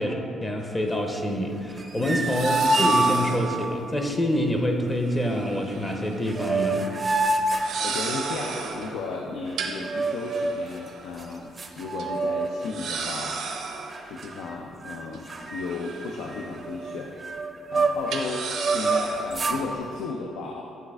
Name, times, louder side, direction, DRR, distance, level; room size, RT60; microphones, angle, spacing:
voice 1, 0.0-6.9, equal, 20° left, 3 dB, 0.6 m, -26 dB
sound 1, 0.6-0.7 2.2-3.6 5.0-6.2 6.5-6.7 7.5-8.9 9.6-11.2 11.6-11.7 12.0-12.1 12.7-14.3 15.1-16.6 16.9-17.0 18.1-19.4, right 5 dB, 80° right, 0.7 m, -34 dB
sound 2, 1.7-3.7 5.9-6.0 6.3-8.5 9.8-10.7 11.2-11.3 11.6-12.7 13.0-13.3 13.9-14.5 14.8-15.0 15.3-18.2 18.6-19.6, right 2 dB, 30° right, 0.5 m, -26 dB
voice 2, 7.8-13.4 14.0-17.1 17.7-20.6, left 4 dB, 90° left, 0 dB, 0.4 m, -34 dB
9.3 x 3.3 x 3.5 m, 2.8 s
cardioid pair, 90°, 0 cm